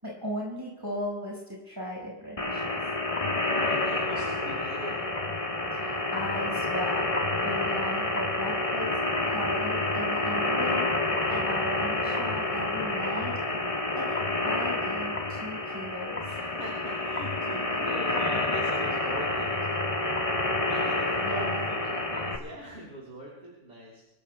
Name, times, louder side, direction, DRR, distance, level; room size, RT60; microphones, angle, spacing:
voice 1, 0.0-2.8 5.7-7.1 7.4-9.0 9.2-10.9 11.3-13.3 13.9-16.2 21.2-21.6, equal, 20° right, -5 dB, 4.8 m, -37 dB
sound 1, 2.4-22.4, left 2 dB, 35° left, 1.3 m, -28 dB
voice 2, 3.4-5.1 16.3-19.5 20.7-21.6 21.8-24.0, right 1 dB, 90° right, -4 dB, 3.7 m, -42 dB
26.0 x 16.0 x 2.2 m, 1.0 s
omnidirectional pair, 1.1 m